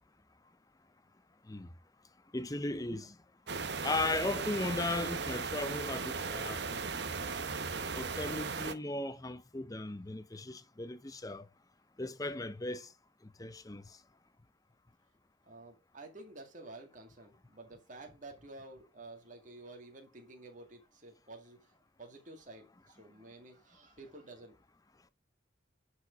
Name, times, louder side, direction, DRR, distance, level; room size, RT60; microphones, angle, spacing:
voice 1, 2.3-3.1 3.8-6.6 7.9-11.5 12.0-12.9 13.4-14.0, left 2 dB, 20° left, 0.6 m, -37 dB
sound 1, 3.5-8.7, right 4 dB, 60° right, 0.9 m, -37 dB
voice 2, 15.4-21.6 22.0-24.6, right 2 dB, 40° right, 2.1 m, -51 dB
10.0 x 4.9 x 5.1 m
head